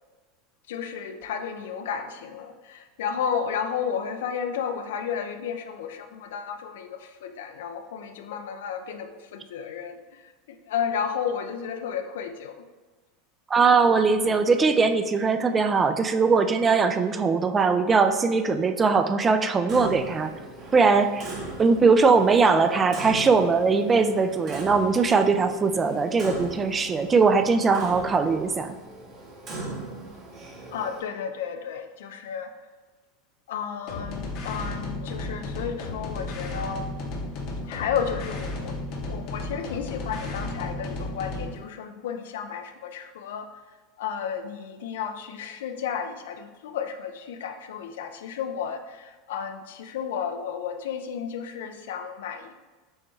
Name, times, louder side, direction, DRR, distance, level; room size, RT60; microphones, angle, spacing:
voice 1, 0.7-12.6 30.7-32.5 33.5-36.9 37.6-38.8 39.1-43.5 44.0-52.5, left 7 dB, 75° left, 7 dB, 0.3 m, -32 dB
voice 2, 13.5-20.3 20.7-21.3 21.6-28.8, right 4 dB, 25° right, 8 dB, 0.3 m, -21 dB
Clock, 19.7-31.0, right 2 dB, 45° right, 1.0 m, -39 dB
sound 1, 33.9-41.6, left 2 dB, 55° left, 0.7 m, -33 dB
6.3 x 2.2 x 3.1 m, 1.3 s
hypercardioid pair, 85°, 0 cm